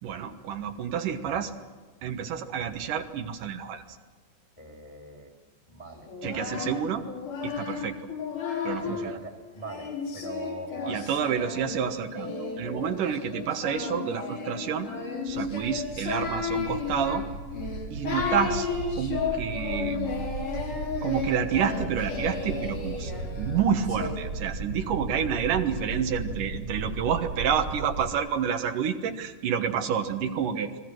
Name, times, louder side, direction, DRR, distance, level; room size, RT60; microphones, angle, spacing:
voice 1, 0.0-1.5 2.0-4.0 6.2-7.1 7.4-8.0 8.6-9.2 10.9-14.9 15.2-17.2 17.9-18.7 19.0-20.2 21.0-23.1 23.4-30.7, right 7 dB, 85° right, 6 dB, 2.9 m, -29 dB
voice 2, 4.6-5.3 5.7-6.1 8.8-11.1, right 2 dB, 10° left, 2 dB, 1.8 m, -41 dB
Singing, 6.1-9.1 9.6-24.1, left 5 dB, 75° left, 6.2 m, -33 dB
sound 1, 15.3-28.1, right 2 dB, 45° right, 2.3 m, -36 dB
29.5 x 21.5 x 6.2 m, 1.4 s
omnidirectional pair, 3.6 m